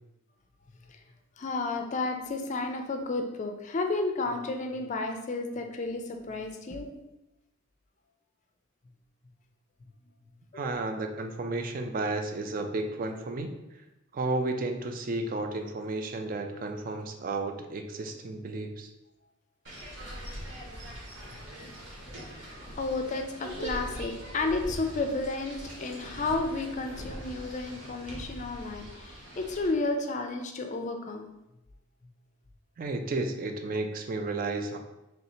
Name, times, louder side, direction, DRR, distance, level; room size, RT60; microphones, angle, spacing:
voice 1, 1.4-6.9 10.5-10.7 22.3-31.3, left 3 dB, 35° left, 4 dB, 0.4 m, -32 dB
voice 2, 10.5-13.5 14.1-18.9 32.8-34.8, right 2 dB, 40° right, 5 dB, 0.4 m, -32 dB
sound 1, 19.6-29.7, equal, 60° right, 1.2 m, -42 dB
3.2 x 2.8 x 4.2 m, 0.94 s
head